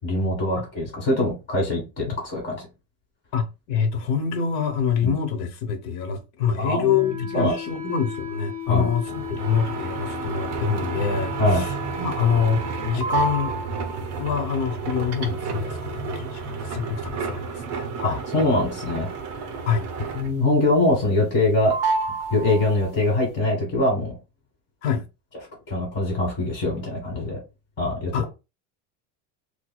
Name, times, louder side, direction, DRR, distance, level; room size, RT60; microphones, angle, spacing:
voice 1, 0.0-2.6 5.0-5.1 6.6-7.0 7.3-7.6 8.7-8.9 11.4-11.7 18.0-19.1 20.1-21.7 22.3-24.1 25.7-27.4 27.8-28.1, left 2 dB, 25° left, 1.5 m, -23 dB
voice 2, 3.3-13.5 14.2-18.1 19.7-19.9 24.8-25.0 28.1-28.3, left 6 dB, 55° left, 0.9 m, -26 dB
Wind instrument woodwind instrument, 6.8-13.0, left 4 dB, 5° left, 0.5 m, -35 dB
sound 1, 9.1-20.6 20.9-21.4 21.7-23.0, right 4 dB, 35° right, 0.6 m, -30 dB
4.6 x 2.2 x 2.2 m
cardioid pair, 165°, 45 cm